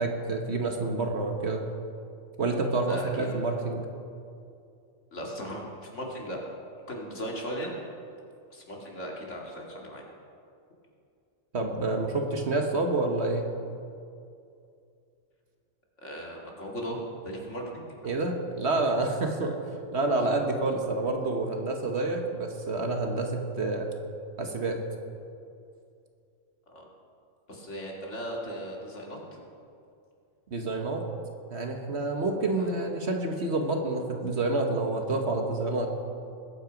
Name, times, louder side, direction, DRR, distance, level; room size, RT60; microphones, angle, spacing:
voice 1, 0.0-1.6 2.4-3.8 11.5-13.5 18.0-19.6 19.9-23.9 24.4-24.8 30.5-31.0 31.5-35.9, right 2 dB, 55° right, 3 dB, 1.6 m, -28 dB
voice 2, 2.8-3.4 5.1-6.4 6.9-7.7 8.5-10.0 16.0-17.9 26.7-26.9 27.5-29.4 32.6-32.7, equal, 65° left, -1 dB, 2.6 m, -37 dB
20.5 x 9.0 x 5.2 m, 2.4 s
omnidirectional pair, 1.4 m